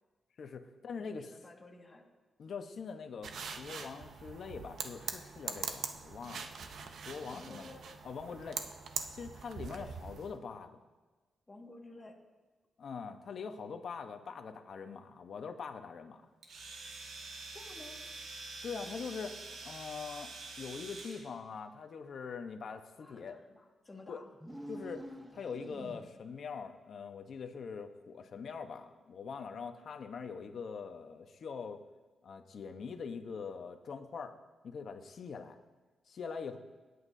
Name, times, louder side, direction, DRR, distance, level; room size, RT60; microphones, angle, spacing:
voice 1, 0.4-1.3 2.4-3.3 3.6-6.5 7.1-7.7 8.0-8.6 9.1-10.8 12.8-16.2 18.6-23.4 24.1-24.2 24.7-25.0 25.3-31.8 32.2-34.3 34.6-35.6 36.1-36.6, left 5 dB, 60° left, 6 dB, 1.0 m, -43 dB
voice 2, 1.0-2.1 7.3-7.8 9.8-9.9 11.5-12.2 17.5-18.0 23.0-24.3, left 2 dB, 20° left, -1 dB, 1.8 m, -53 dB
sound 1, 3.2-10.4, right 5 dB, 70° right, 0.8 m, -43 dB
Domestic sounds home sounds, 16.4-21.3, right 3 dB, 85° right, 1.9 m, -46 dB
sound 2, 24.3-26.4, right 1 dB, 10° right, 0.9 m, -47 dB
25.5 x 9.5 x 2.7 m, 1.3 s
wide cardioid pair, 125°, 0 cm